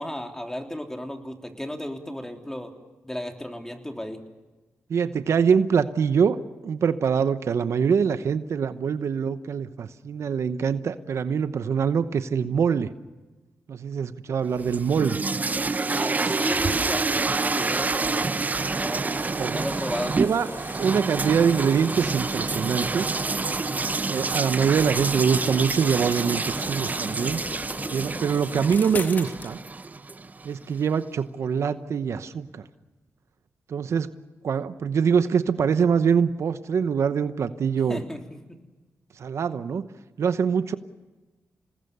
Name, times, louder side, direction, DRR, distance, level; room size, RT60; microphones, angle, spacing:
voice 1, 0.0-2.7 3.0-4.2 15.9-18.4 18.7-20.6 37.9-38.6, left 1 dB, 10° left, 3 dB, 3.4 m, -34 dB
voice 2, 4.9-6.4 6.6-12.9 13.7-15.2 19.4-19.6 20.0-20.5 20.8-23.1 24.1-27.4 27.9-29.6 30.4-32.7 33.7-34.1 34.4-38.0 39.2-39.8 40.2-40.7, right 6 dB, 70° right, 12 dB, 0.9 m, -24 dB
sound 1, 14.5-30.5, right 3 dB, 35° right, 0.7 m, -28 dB
sound 2, 16.5-27.2, right 4 dB, 50° right, 3.2 m, -39 dB
sound 3, 19.1-29.5, left 3 dB, 35° left, 1.9 m, -41 dB
28.0 x 19.5 x 6.9 m, 1.2 s
cardioid pair, 60°, 5 cm